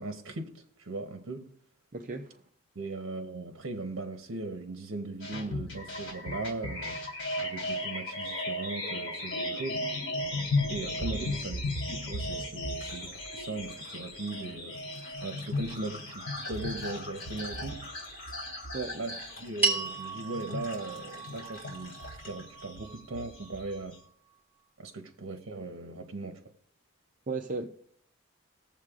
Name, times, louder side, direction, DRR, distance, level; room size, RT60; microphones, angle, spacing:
voice 1, 0.0-1.5 2.7-7.0 7.4-9.9 10.7-11.6 11.9-14.8 15.2-17.9 18.9-24.0 24.8-26.4, right 2 dB, 80° right, 0.9 m, -38 dB
voice 2, 1.9-2.4 11.2-11.3 18.7-19.0 27.3-27.7, right 3 dB, 40° right, 0.5 m, -35 dB
sound 1, 5.2-24.0, left 1 dB, 65° left, 3.0 m, -36 dB
sound 2, 12.2-23.8, left 2 dB, 45° left, 3.1 m, -52 dB
sound 3, 19.6-24.1, right 4 dB, 10° right, 1.8 m, -35 dB
20.5 x 7.3 x 2.4 m
head